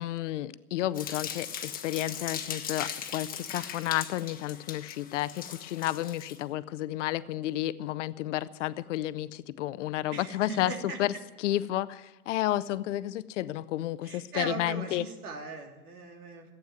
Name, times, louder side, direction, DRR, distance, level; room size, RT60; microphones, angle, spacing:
voice 1, 0.0-9.3 9.6-10.7 11.0-11.1 11.4-12.0 12.3-15.0, left 14 dB, 55° left, 17 dB, 0.7 m, -31 dB
sound 1, 1.0-6.4, left 8 dB, 20° left, 1.4 m, -39 dB
voice 2, 10.1-11.2 14.0-16.5, right 4 dB, 75° right, 3 dB, 3.0 m, -39 dB
15.0 x 9.1 x 9.3 m, 1.1 s
hypercardioid pair, 105°, 44 cm